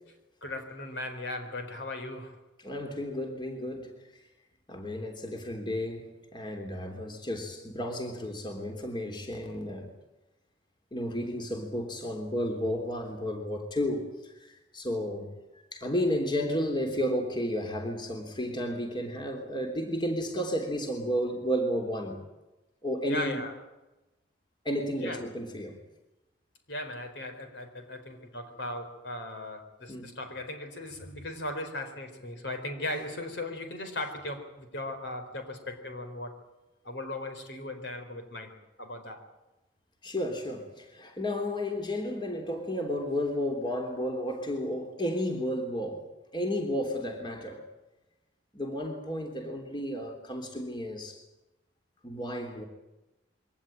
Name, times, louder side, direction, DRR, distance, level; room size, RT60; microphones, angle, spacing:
voice 1, 0.4-2.4 23.1-23.5 25.0-25.2 26.7-36.4 36.8-38.5 38.8-39.2, left 1 dB, 65° left, 4.5 m, -37 dB
voice 2, 2.6-3.9 4.7-9.9 10.9-15.3 15.7-22.2 22.8-23.4 24.6-25.8 29.9-30.2 40.0-46.1 46.3-47.7 48.5-51.2 52.0-52.6, equal, 25° left, 3.4 m, -32 dB
23.5 x 18.5 x 9.0 m
head